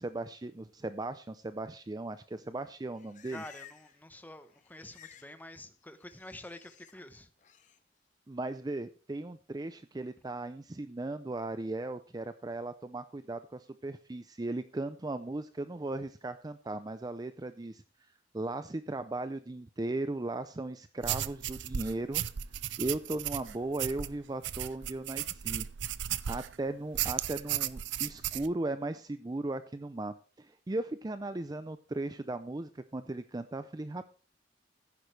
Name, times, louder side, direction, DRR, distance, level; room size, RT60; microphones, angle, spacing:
voice 1, 0.0-3.4 8.3-22.2 22.8-25.7 26.3-34.1, right 2 dB, 20° right, 11 dB, 0.4 m, -37 dB
Livestock farm animals working animals, 2.6-4.0 4.3-5.3 5.6-6.9 7.4-7.8, left 9 dB, 45° left, 0.9 m, -56 dB
voice 2, 3.3-7.3, left 1 dB, 10° left, 10 dB, 0.9 m, -48 dB
sound 1, 21.0-26.6 26.9-28.5, right 11 dB, 85° right, 0.5 m, -35 dB
15.0 x 10.5 x 3.3 m, 0.38 s
head